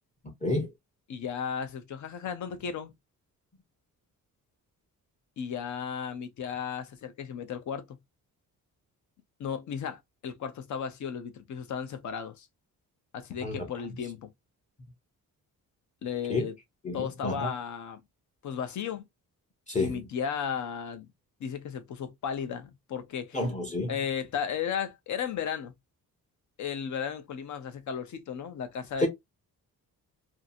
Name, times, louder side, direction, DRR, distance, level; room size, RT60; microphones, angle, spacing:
voice 1, 1.1-2.9 5.4-8.0 9.4-12.5 13.1-14.3 16.0-16.6 16.9-18.0 18.4-19.0 19.8-21.1 21.4-23.4 23.9-25.7 26.6-29.1, left 7 dB, 55° left, 0.7 m, -35 dB
voice 2, 16.8-17.5 19.7-20.0 23.3-23.9 29.0-29.1, left 2 dB, 20° left, 0.7 m, -29 dB
2.7 x 2.5 x 2.6 m
wide cardioid pair, 175°, 35 cm